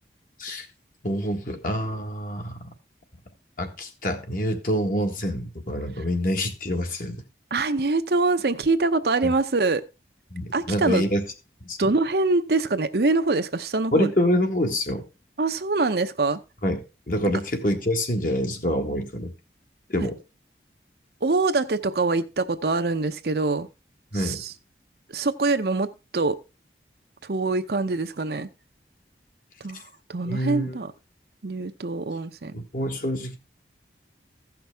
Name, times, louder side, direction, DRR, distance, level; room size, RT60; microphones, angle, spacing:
voice 1, 1.0-2.6 3.6-7.2 9.2-9.3 10.3-11.2 11.6-11.8 13.9-15.0 16.6-16.8 17.1-19.3 19.9-20.2 24.1-24.4 30.2-30.8 32.5-33.4, equal, 50° left, 1.5 m, -26 dB
voice 2, 7.5-9.8 10.5-11.0 11.8-14.1 15.4-16.4 21.2-23.7 24.1-24.5 25.1-26.4 27.3-28.5 29.6-29.8 30.1-30.9 31.4-32.5, right 3 dB, 60° right, 0.7 m, -24 dB
15.0 x 6.0 x 3.4 m
head